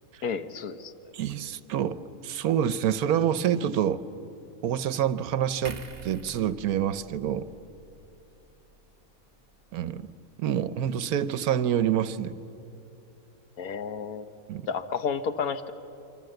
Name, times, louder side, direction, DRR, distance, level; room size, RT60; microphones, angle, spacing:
voice 1, 0.2-0.9 13.6-14.2 14.7-15.7, left 6 dB, 75° left, 10 dB, 1.5 m, -31 dB
voice 2, 1.1-2.0 2.2-4.0 4.6-7.5 9.7-10.1 10.4-12.4 14.5-14.7, right 9 dB, 80° right, 15 dB, 1.3 m, -27 dB
sound 1, 5.6-9.0 9.4-9.5, right 4 dB, 40° right, 1.4 m, -46 dB
27.5 x 24.0 x 7.9 m, 2.8 s
omnidirectional pair, 1.6 m